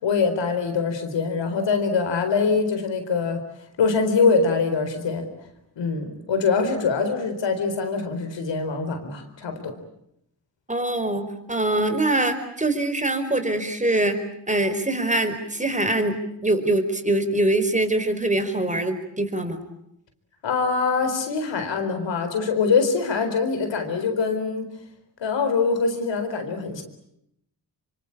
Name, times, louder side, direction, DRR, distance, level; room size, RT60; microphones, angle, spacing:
voice 1, 0.0-3.4 3.8-5.3 5.8-9.7 20.4-24.7 25.2-26.8, left 4 dB, 85° left, 7 dB, 4.4 m, -23 dB
voice 2, 10.7-19.6, right 2 dB, 15° right, 9 dB, 5.0 m, -23 dB
25.5 x 25.0 x 8.7 m, 0.78 s
cardioid pair, 50°, 43 cm